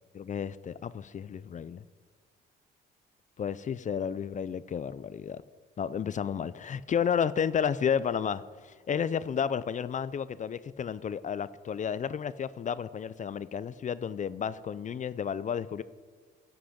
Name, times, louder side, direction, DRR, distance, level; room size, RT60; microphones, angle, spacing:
voice 1, 0.1-1.8 3.4-5.4 5.8-15.8, left 7 dB, 40° left, 17 dB, 0.4 m, -32 dB
13.0 x 6.0 x 8.5 m, 1.5 s
cardioid pair, 90°, 20 cm